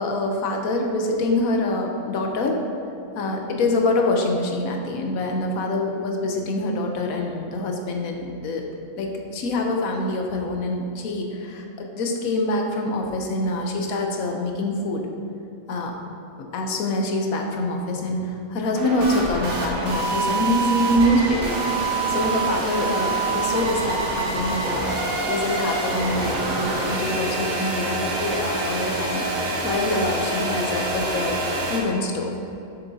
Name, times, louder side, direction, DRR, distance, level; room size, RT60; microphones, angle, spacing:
voice 1, 0.0-2.6 3.2-8.6 9.0-15.0 15.7-15.9 16.5-21.6 22.1-24.9 25.3-31.4 31.7-32.3, left 1 dB, 85° left, 2 dB, 1.2 m, -25 dB
sound 1, 18.7-31.8, right 2 dB, 85° right, 1.6 m, -26 dB
6.9 x 6.9 x 2.7 m, 2.7 s
omnidirectional pair, 1.4 m